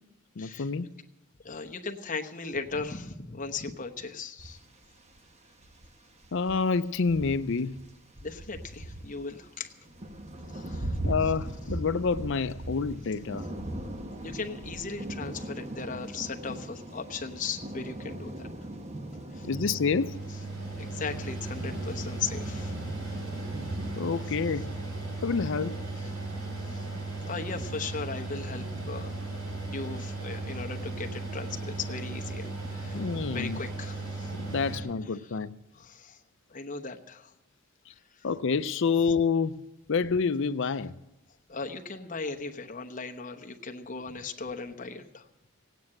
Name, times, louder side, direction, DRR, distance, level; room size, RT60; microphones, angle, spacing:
voice 1, 0.4-0.9 6.3-7.8 11.0-13.5 19.5-20.2 24.0-24.7 25.2-25.8 32.9-33.6 34.4-35.5 38.2-39.6 39.9-40.9, left 5 dB, 60° left, 0.5 m, -28 dB
voice 2, 1.4-4.6 8.2-9.7 10.5-11.0 11.2-11.3 14.2-18.5 19.3-19.5 20.8-22.7 23.1-23.2 26.0-26.1 26.7-26.9 27.2-29.1 29.7-33.1 33.3-34.3 34.7-34.9 35.2-35.3 35.7-36.2 36.5-37.3 38.1-38.3 41.5-45.3, left 4 dB, 40° left, 1.0 m, -37 dB
sound 1, 4.4-5.2 5.5-7.9 8.2-23.9, right 1 dB, 30° right, 1.0 m, -39 dB
Mechanical fan, 19.4-34.8, right 2 dB, 75° right, 4.2 m, -36 dB
17.0 x 9.2 x 7.7 m
head